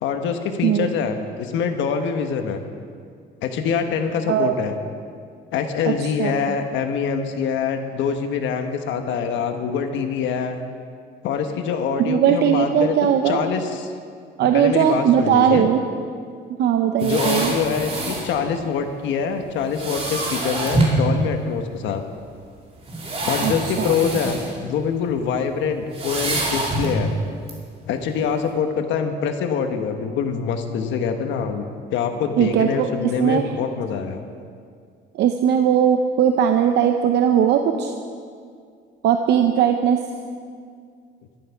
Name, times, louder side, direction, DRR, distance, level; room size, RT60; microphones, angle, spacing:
voice 1, 0.0-2.6 3.4-4.7 5.5-10.6 11.2-13.0 13.2-13.9 14.5-15.7 17.0-22.0 23.3-27.1 27.8-31.7 31.9-34.2, left 6 dB, 80° left, 6 dB, 1.2 m, -24 dB
voice 2, 12.0-13.4 14.4-15.8 16.6-17.5 23.4-23.9 32.4-32.9 33.2-33.5 35.1-37.9 39.0-40.0, right 9 dB, 65° right, 5 dB, 0.7 m, -19 dB
sound 1, 17.0-18.3 19.7-21.0 22.0-22.1 22.8-24.5 24.9-25.1 25.9-27.1 27.5-27.6, right 2 dB, 30° right, 2.8 m, -25 dB
12.0 x 11.5 x 5.8 m, 2.2 s
cardioid pair, 165°, 19 cm